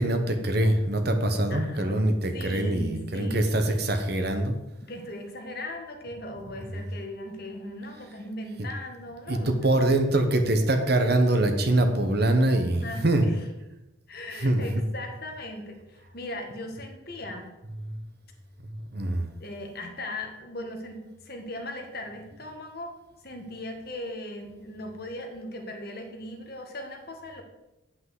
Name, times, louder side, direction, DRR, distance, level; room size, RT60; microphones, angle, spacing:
voice 1, 0.0-4.6 9.3-13.3 14.4-14.8 18.9-19.3, right 1 dB, 50° right, 6 dB, 1.2 m, -24 dB
voice 2, 1.5-2.0 2.3-3.7 4.8-10.0 12.8-13.5 14.1-17.5 19.4-22.9 23.2-27.4, left 1 dB, 50° left, 3 dB, 1.8 m, -38 dB
8.6 x 5.8 x 7.9 m, 0.97 s
head